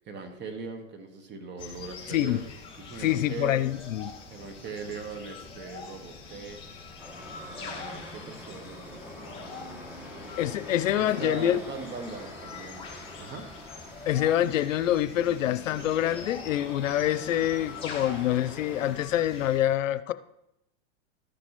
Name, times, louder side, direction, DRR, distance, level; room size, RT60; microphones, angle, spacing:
voice 1, 0.0-2.4 2.8-3.7 4.3-6.9 7.5-10.4 10.9-12.9 13.2-13.5, right 4 dB, 30° right, 7 dB, 1.4 m, -41 dB
sound 1, 1.6-19.6, left 4 dB, 15° left, 2.3 m, -44 dB
voice 2, 2.1-2.4 3.0-4.1 10.4-11.6 14.1-20.1, left 12 dB, 90° left, 14 dB, 0.6 m, -26 dB
sound 2, 7.0-19.0, left 1 dB, 5° right, 1.4 m, -45 dB
13.5 x 6.2 x 3.1 m, 0.85 s
hypercardioid pair, 120°, 37 cm